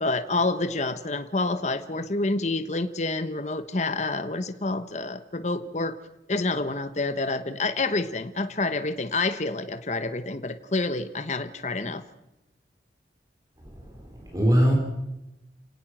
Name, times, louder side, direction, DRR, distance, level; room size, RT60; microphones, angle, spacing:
voice 1, 0.0-6.0 6.3-12.0, left 2 dB, 40° left, 10 dB, 1.1 m, -28 dB
voice 2, 13.6-14.7, equal, 20° right, 1 dB, 3.7 m, -23 dB
29.5 x 18.0 x 6.1 m, 0.94 s
head